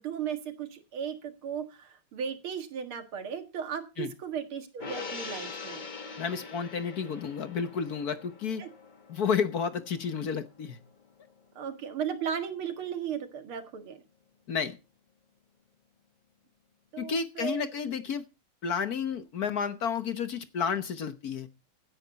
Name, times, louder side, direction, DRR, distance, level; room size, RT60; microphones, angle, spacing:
voice 1, 0.0-5.8 8.6-8.7 11.6-14.0 16.9-17.7, right 7 dB, 85° right, 8 dB, 2.7 m, -36 dB
Gong, 4.8-11.4 11.8-11.9, left 4 dB, 30° left, 1.1 m, -43 dB
voice 2, 6.2-8.6 9.1-10.8 14.5-14.8 17.0-18.2 18.6-21.5, left 6 dB, 55° left, 11 dB, 1.4 m, -31 dB
16.5 x 10.5 x 4.0 m, 0.29 s
omnidirectional pair, 2.3 m